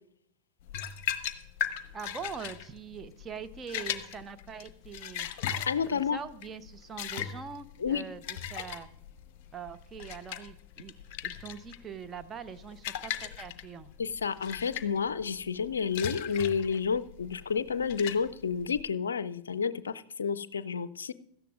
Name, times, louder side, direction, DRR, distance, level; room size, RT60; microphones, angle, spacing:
sound 1, 0.7-18.8, left 9 dB, 45° left, 0.9 m, -38 dB
voice 1, 1.9-5.3 5.9-8.9 9.5-10.9 11.2-13.9, right 6 dB, 20° right, 9 dB, 0.8 m, -43 dB
voice 2, 5.7-6.2 7.8-8.0 14.0-21.1, left 6 dB, 70° left, 16 dB, 0.5 m, -30 dB
17.0 x 13.0 x 2.5 m, 0.69 s
figure-of-eight pair, 90°, 0 cm